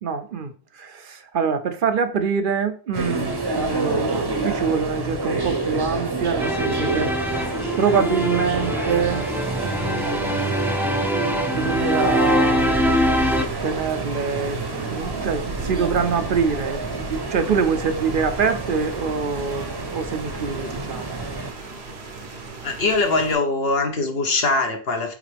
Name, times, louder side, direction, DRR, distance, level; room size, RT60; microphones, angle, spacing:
voice 1, 0.0-7.4 7.8-9.3 9.6-10.6 11.5-13.1 13.6-14.6 14.9-21.2, right 5 dB, 60° right, 0.7 m, -25 dB
sound 1, 2.9-21.5, right 2 dB, 25° right, 0.8 m, -29 dB
sound 2, 6.4-13.5, equal, 5° right, 0.4 m, -23 dB
Rain, 12.6-23.3, right 3 dB, 80° right, 1.3 m, -36 dB
voice 2, 22.6-25.1, left 3 dB, 70° left, 1.3 m, -22 dB
8.7 x 3.3 x 3.4 m
omnidirectional pair, 1.1 m